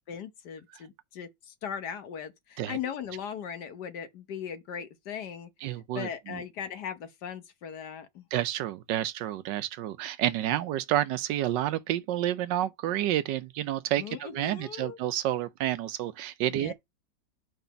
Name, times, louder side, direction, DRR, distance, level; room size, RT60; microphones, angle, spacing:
voice 1, 0.1-8.3 14.0-15.0 16.5-16.7, left 8 dB, 65° left, 1.4 m, -39 dB
voice 2, 5.6-6.4 8.3-16.7, right 13 dB, 75° right, 1.2 m, -30 dB
5.1 x 3.9 x 5.5 m
omnidirectional pair, 2.0 m